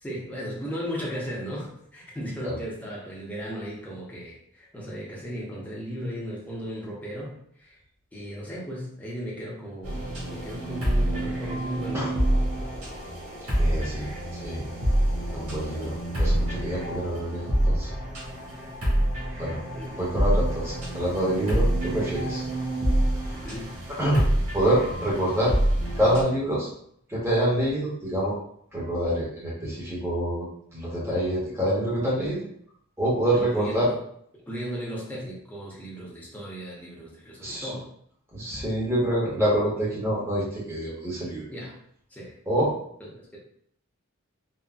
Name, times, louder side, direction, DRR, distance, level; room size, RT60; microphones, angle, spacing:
voice 1, 0.0-7.8 8.1-10.0 10.3-12.1 19.7-19.9 23.3-23.7 33.3-34.0 34.4-37.9 41.5-41.8 42.1-42.4 43.0-43.4, equal, 10° left, -5 dB, 0.7 m, -36 dB
sound 1, 9.8-26.2, right 1 dB, 80° right, 1.4 m, -27 dB
voice 2, 13.5-14.1 14.4-14.7 15.3-17.9 19.4-19.6 19.9-22.5 23.3-23.4 24.0-24.3 24.5-25.5 26.0-26.7 27.1-28.4 28.7-32.4 33.0-33.9 37.4-37.7 38.3-41.4 42.5-42.7, right 1 dB, 10° right, -7 dB, 0.9 m, -26 dB
3.9 x 2.0 x 2.3 m, 0.67 s
head